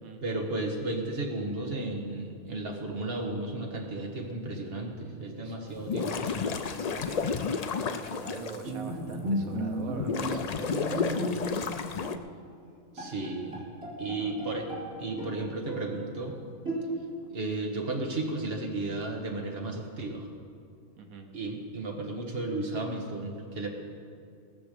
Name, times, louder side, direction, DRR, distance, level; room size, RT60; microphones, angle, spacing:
voice 1, 0.2-6.2 12.9-13.6 14.0-14.7 15.0-16.4 17.3-20.3 21.3-23.7, right 2 dB, 45° right, 1 dB, 1.8 m, -34 dB
sound 1, 5.7-8.6 9.1-9.2 10.0-12.2, left 5 dB, 85° left, 0.3 m, -31 dB
voice 2, 6.0-11.6 14.2-14.4 14.7-14.8 21.0-21.3, right 4 dB, 90° right, 4 dB, 1.5 m, -44 dB
Bowed string instrument, 8.6-11.7 12.0-12.2 12.7-12.8 13.0-14.9 15.2-16.0 16.6-17.2, right 1 dB, 75° right, 3.4 m, -34 dB
18.5 x 7.1 x 6.8 m, 2.3 s
omnidirectional pair, 1.4 m